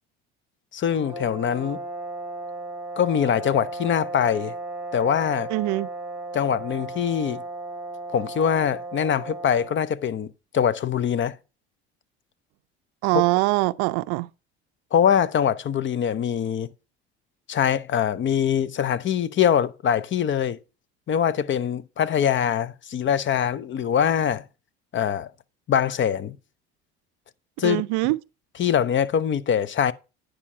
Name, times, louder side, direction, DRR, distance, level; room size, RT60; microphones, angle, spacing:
voice 1, 0.7-1.8 3.0-4.5 4.9-5.5 6.3-7.4 8.1-11.3 13.1-13.2 14.9-16.7 17.5-20.6 21.1-24.4 24.9-25.3 25.7-26.4 27.6-27.8 28.6-29.9, left 8 dB, 35° left, 0.6 m, -23 dB
sound 1, 0.9-9.9, right 2 dB, 5° right, 1.8 m, -35 dB
voice 2, 5.5-5.9 13.0-14.3 27.6-28.2, right 22 dB, 65° right, 0.5 m, -23 dB
9.9 x 5.0 x 5.4 m
hypercardioid pair, 70°, 32 cm